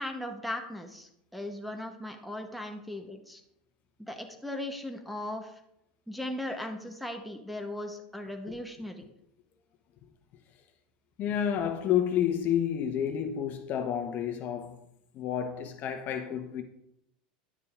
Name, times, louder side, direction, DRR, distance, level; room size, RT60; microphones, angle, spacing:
voice 1, 0.0-3.4 4.0-5.6 6.1-9.0, left 1 dB, ahead, 0.9 m, -38 dB
voice 2, 11.2-14.8 15.1-16.6, left 9 dB, 45° left, 0.9 m, -30 dB
10.5 x 6.7 x 2.5 m
hypercardioid pair, 100°, 4 cm